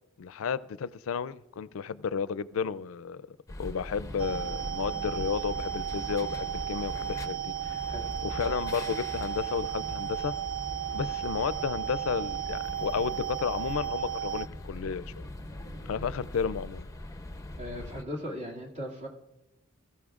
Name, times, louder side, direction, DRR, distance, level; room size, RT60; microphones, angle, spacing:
voice 1, 0.2-3.3 3.6-7.8 8.2-10.3 10.9-15.3 15.9-16.8, left 6 dB, 90° left, 0.4 m, -32 dB
sound 1, 3.5-18.0, left 1 dB, 15° left, 0.7 m, -41 dB
sound 2, 3.9-16.3, equal, 20° right, 1.4 m, -49 dB
sound 3, 4.2-14.5, right 11 dB, 90° right, 0.7 m, -35 dB
voice 2, 17.6-19.1, equal, 35° right, 2.2 m, -38 dB
21.0 x 13.5 x 2.4 m
head